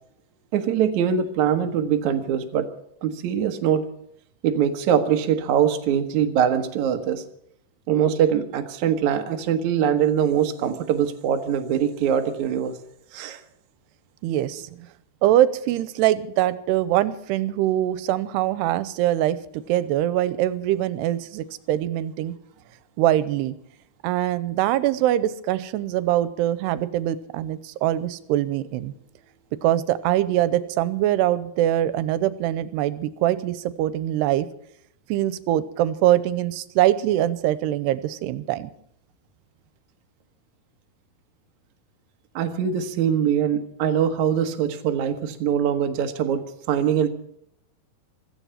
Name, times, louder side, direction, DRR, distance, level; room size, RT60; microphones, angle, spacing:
voice 1, 0.5-2.7 3.0-3.8 4.4-7.2 7.9-12.7 13.1-13.4 42.4-47.1, right 8 dB, 65° right, 5 dB, 2.1 m, -22 dB
voice 2, 14.2-14.7 15.2-22.3 23.0-23.6 24.0-28.9 29.6-34.5 35.1-38.7, right 13 dB, 90° right, 15 dB, 2.9 m, -23 dB
16.5 x 14.0 x 5.7 m, 0.72 s
omnidirectional pair, 4.7 m